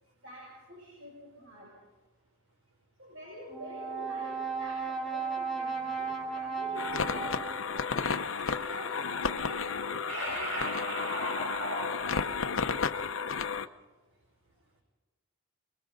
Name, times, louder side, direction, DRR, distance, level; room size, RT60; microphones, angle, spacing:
voice 1, 0.2-1.8 3.0-8.0 8.5-11.2, equal, 65° right, -4 dB, 7.0 m, -47 dB
Brass instrument, 3.5-7.9, right 5 dB, ahead, 2.7 m, -35 dB
sound 1, 6.7-13.7, left 5 dB, 65° left, 0.8 m, -32 dB
voice 2, 8.0-8.7 10.1-12.1, equal, 90° right, 2 dB, 5.5 m, -36 dB
28.5 x 22.0 x 4.1 m, 1.2 s
head